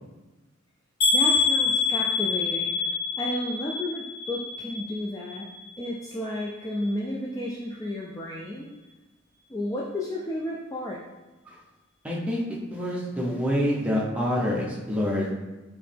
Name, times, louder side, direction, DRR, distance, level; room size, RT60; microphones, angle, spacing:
sound 1, 1.0-5.0 5.3-5.9 6.4-6.5 6.8-6.9, left 5 dB, 65° left, 1.2 m, -26 dB
voice 1, 1.1-8.7 9.5-11.0, left 1 dB, 15° left, -4 dB, 0.3 m, -32 dB
voice 2, 12.0-12.4 12.7-15.5, equal, 5° right, -4 dB, 0.7 m, -27 dB
4.7 x 3.1 x 3.3 m, 1.2 s
head